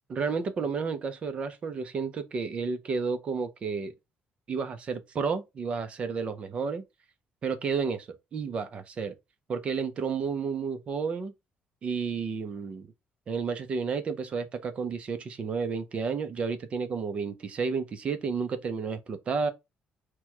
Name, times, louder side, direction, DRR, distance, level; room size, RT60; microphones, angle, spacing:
voice 1, 0.1-3.9 4.5-6.8 7.4-9.1 9.5-11.3 11.8-12.9 13.3-19.5, right 5 dB, 40° right, 0.7 m, -31 dB
4.4 x 2.3 x 4.5 m
cardioid pair, 145°, 3 cm